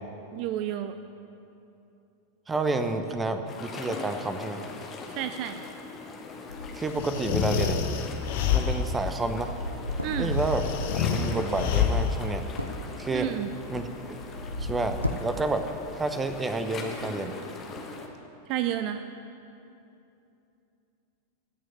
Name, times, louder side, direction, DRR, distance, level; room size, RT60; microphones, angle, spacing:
voice 1, 0.3-1.0 5.1-5.6 10.0-10.3 13.1-13.5 18.5-19.0, right 11 dB, 40° right, 10 dB, 0.5 m, -31 dB
voice 2, 2.5-4.6 6.7-7.8 8.5-9.5 10.2-12.4 13.0-13.3 13.7-14.2 14.6-15.7 15.9-17.3, right 2 dB, 15° right, 8 dB, 1.0 m, -30 dB
sound 1, 3.5-18.1, left 4 dB, 25° left, 1.6 m, -41 dB
sound 2, 6.5-11.3 12.4-15.9 16.1-16.5 17.0-17.1, left 1 dB, 90° left, 0.7 m, -36 dB
sound 3, 7.0-9.1 10.4-12.2, left 7 dB, 50° left, 1.1 m, -27 dB
16.5 x 6.3 x 9.7 m, 2.8 s
figure-of-eight pair, 90°, 0 cm